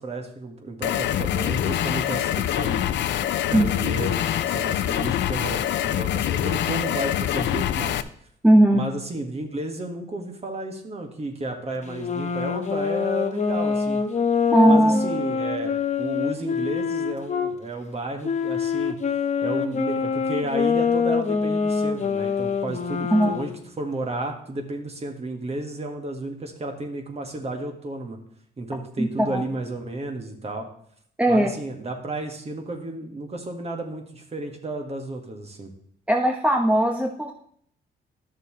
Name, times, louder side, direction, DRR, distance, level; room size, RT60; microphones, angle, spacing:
voice 1, 0.0-2.8 3.5-8.0 8.7-14.0 14.7-19.0 19.4-23.5 23.8-28.2 28.6-30.7 31.3-35.7, right 2 dB, 35° right, 4 dB, 1.7 m, -32 dB
sound 1, 0.8-8.0, left 11 dB, 75° left, 0.5 m, -25 dB
voice 2, 8.4-8.8 14.5-15.0 23.1-23.3 29.0-29.4 31.2-31.5 36.1-37.3, right 1 dB, 5° right, 2 dB, 1.0 m, -18 dB
sound 2, 11.8-17.5 18.2-23.6, left 6 dB, 40° left, 0.9 m, -25 dB
11.5 x 6.7 x 3.2 m, 0.65 s
cardioid pair, 80°, 19 cm